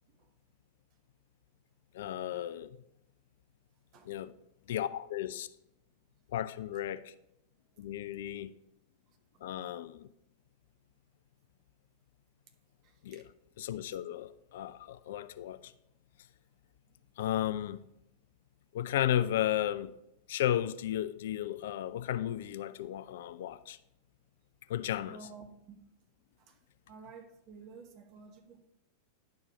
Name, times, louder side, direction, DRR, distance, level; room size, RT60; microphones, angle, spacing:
voice 1, 1.9-2.8 4.1-4.3 4.7-5.5 6.3-7.1 7.8-8.5 9.4-10.1 13.0-13.2 13.6-15.7 17.2-17.8 18.7-19.9 20.3-23.8 24.7-25.3, left 11 dB, 55° left, 0.4 m, -34 dB
voice 2, 12.8-13.2 25.0-25.8 26.4-26.6 26.9-28.7, right 5 dB, 40° right, 1.1 m, -52 dB
10.5 x 4.7 x 5.0 m
figure-of-eight pair, 90°, 0 cm